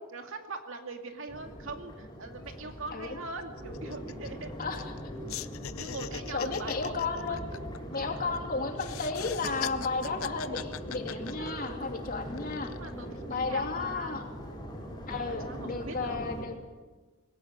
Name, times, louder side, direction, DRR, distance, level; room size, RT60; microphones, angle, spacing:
voice 1, 0.1-4.5 5.8-7.4 7.9-8.1 11.1-11.8 12.5-14.3 15.3-16.2, right 3 dB, 65° right, 5 dB, 2.4 m, -42 dB
Crowd, 1.3-16.4, equal, 20° left, 5.7 m, -41 dB
sound 1, 2.5-2.6 2.9-3.1 3.4-5.0 5.3-8.4 8.7-11.9 12.3-12.9, left 9 dB, 85° left, 0.7 m, -40 dB
voice 2, 6.3-7.4 7.9-12.7 13.3-14.2 15.1-16.6, left 4 dB, 45° left, 3 dB, 2.8 m, -33 dB
19.5 x 17.5 x 8.8 m, 1.3 s
head